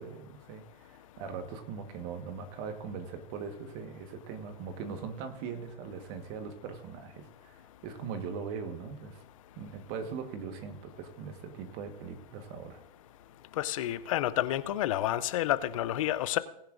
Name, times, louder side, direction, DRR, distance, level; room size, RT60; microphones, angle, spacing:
voice 1, 0.0-9.2 9.5-12.8, right 6 dB, 30° right, 1.4 m, -40 dB
voice 2, 13.6-16.4, left 13 dB, 35° left, 0.6 m, -29 dB
19.0 x 10.0 x 2.6 m
hypercardioid pair, 140°, 29 cm